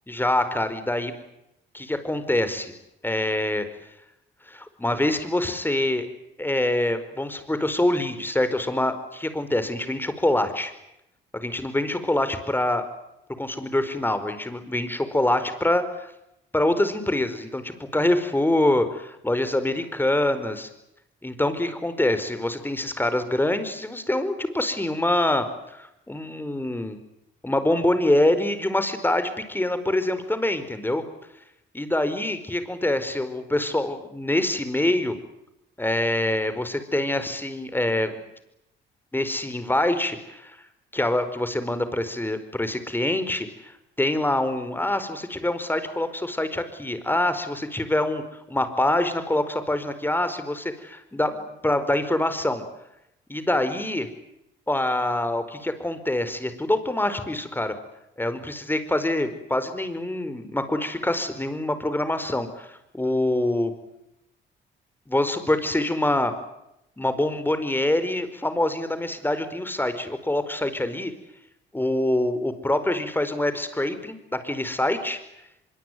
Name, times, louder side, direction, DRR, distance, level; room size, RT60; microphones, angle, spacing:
voice 1, 0.1-1.1 1.7-2.7 3.0-3.7 4.5-6.0 6.4-10.7 11.3-12.8 13.4-16.1 16.5-20.7 21.2-27.0 27.4-31.0 31.7-35.1 35.8-38.1 39.1-40.6 40.9-48.2 48.5-52.6 53.3-54.1 54.7-57.7 58.2-63.7 65.1-66.3 67.0-71.1 71.7-75.2, left 1 dB, 10° left, 10 dB, 4.7 m, -25 dB
24.5 x 23.5 x 9.6 m, 0.84 s
cardioid pair, 90°, 20 cm